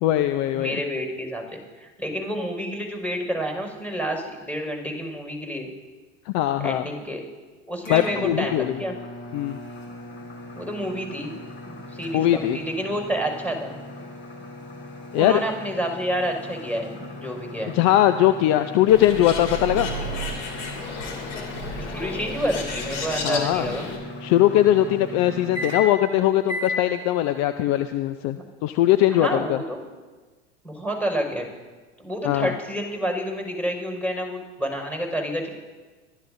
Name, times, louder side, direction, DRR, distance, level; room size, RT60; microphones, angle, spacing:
voice 1, 0.0-0.8 6.3-6.8 7.9-8.7 9.3-9.6 12.1-12.6 15.1-15.4 17.7-19.9 23.2-23.7 24.2-29.6 32.2-32.5, left 13 dB, 50° left, 10 dB, 0.7 m, -20 dB
voice 2, 0.5-5.7 6.6-7.2 7.7-9.0 10.6-11.3 11.7-13.8 15.2-17.8 21.8-23.9 28.3-28.4 29.1-29.9 30.6-31.5 32.0-35.5, equal, 5° left, 1 dB, 5.4 m, -29 dB
sound 1, 7.8-26.1 26.5-26.8, left 2 dB, 30° left, 3.9 m, -37 dB
Bird, 18.9-24.0, left 2 dB, 80° left, 2.7 m, -32 dB
23.5 x 14.0 x 2.7 m, 1.3 s
hypercardioid pair, 80°, 35 cm